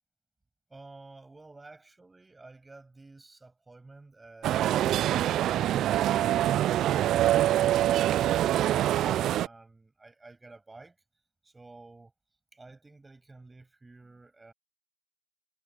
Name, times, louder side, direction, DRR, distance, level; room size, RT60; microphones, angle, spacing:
voice 1, 0.7-11.0 11.4-12.1 12.5-14.5, right 3 dB, 5° right, 7.7 m, -52 dB
sound 1, 4.4-9.5, right 13 dB, 25° right, 0.5 m, -25 dB
hypercardioid pair, 145°, 0 cm